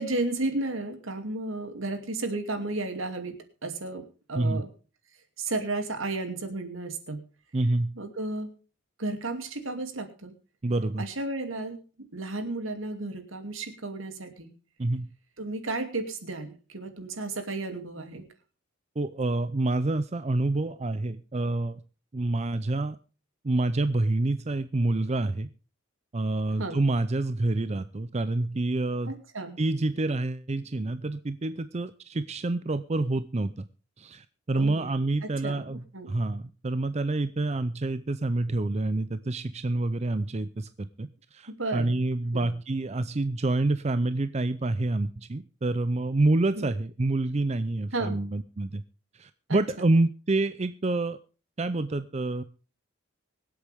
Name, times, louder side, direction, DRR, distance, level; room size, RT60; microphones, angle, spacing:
voice 1, 0.0-3.4 3.6-4.7 5.4-7.2 8.0-8.5 9.0-10.3 11.0-11.8 12.1-14.5 15.4-18.3 26.6-26.8 29.0-29.6 34.6-34.9 35.2-36.1 41.6-42.0 42.3-42.5 46.6-46.7 47.9-48.2 49.5-49.6, right 2 dB, 75° right, 7 dB, 2.6 m, -33 dB
voice 2, 7.5-7.9 10.6-11.0 14.8-15.1 19.0-21.8 22.1-23.0 23.4-25.5 26.1-29.1 29.6-33.7 34.0-48.8 49.2-51.2 51.6-52.4, right 2 dB, 30° right, 12 dB, 0.5 m, -27 dB
25.0 x 8.3 x 3.5 m, 0.35 s
head